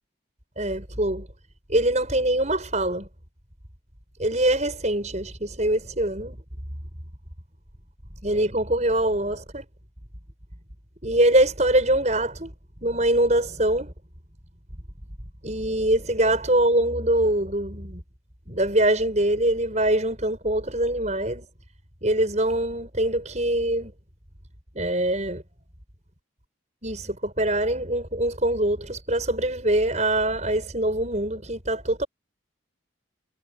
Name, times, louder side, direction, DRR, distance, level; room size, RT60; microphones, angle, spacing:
voice 1, 0.6-1.3 1.7-3.1 4.2-6.4 8.2-9.6 11.0-12.5 12.8-13.9 15.4-18.0 18.5-21.5 22.0-23.9 24.7-25.4 26.8-32.1, right 1 dB, 35° right, 7.6 m, -23 dB
head